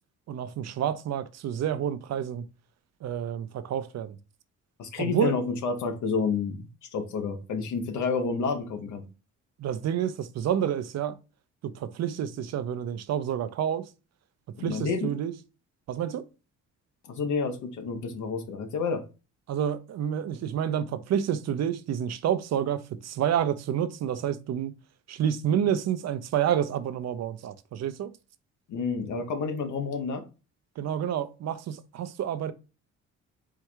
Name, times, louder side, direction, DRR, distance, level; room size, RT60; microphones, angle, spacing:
voice 1, 0.3-2.4 3.0-4.2 5.0-5.4 9.6-11.1 11.6-13.8 14.6-15.3 15.9-16.2 19.5-24.7 25.1-28.1 30.8-32.5, right 9 dB, 60° right, 0.6 m, -29 dB
voice 2, 4.8-9.0 14.6-15.1 17.0-19.0 28.7-30.2, left 5 dB, 75° left, 1.0 m, -29 dB
4.6 x 2.3 x 4.4 m
cardioid pair, 90°, 30 cm